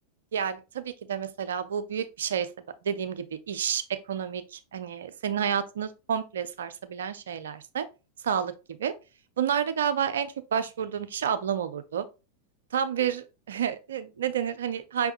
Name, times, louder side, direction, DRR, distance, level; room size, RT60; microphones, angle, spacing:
voice 1, 0.3-2.5 2.8-3.8 4.1-7.9 8.2-8.5 8.8-8.9 9.4-12.0 12.7-15.1, right 8 dB, 65° right, 0.5 m, -30 dB
5.3 x 3.5 x 2.5 m
figure-of-eight pair, 90°, 0 cm